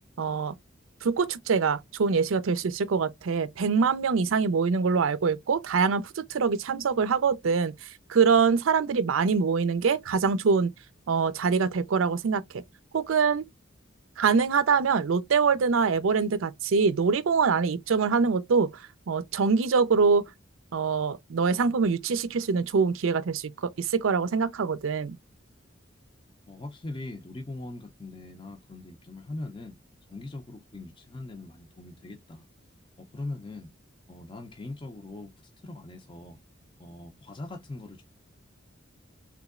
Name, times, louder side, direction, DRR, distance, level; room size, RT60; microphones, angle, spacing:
voice 1, 0.2-0.5 1.0-7.7 8.1-10.7 11.1-12.6 12.9-13.4 14.2-18.7 19.1-20.2 20.7-25.2, right 5 dB, 85° right, 0.5 m, -24 dB
voice 2, 26.5-29.7 30.1-32.4 33.1-33.7 34.1-35.3 35.6-36.4 36.8-38.0, left 2 dB, 25° left, 0.4 m, -40 dB
3.5 x 3.0 x 2.4 m
head